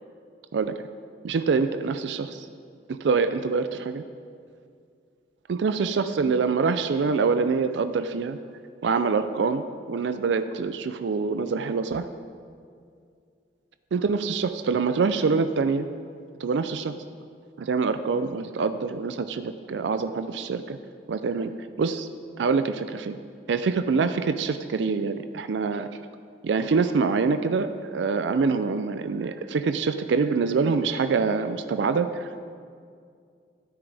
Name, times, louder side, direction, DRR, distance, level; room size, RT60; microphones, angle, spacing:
voice 1, 1.2-2.5 2.9-4.0 5.5-8.4 8.8-12.1 13.9-15.9 16.4-16.9 17.6-20.8 21.1-21.5 21.8-22.1 22.4-23.2 23.5-25.9 26.4-32.4, right 4 dB, 80° right, 10 dB, 0.4 m, -25 dB
12.5 x 9.5 x 3.4 m, 2.3 s
head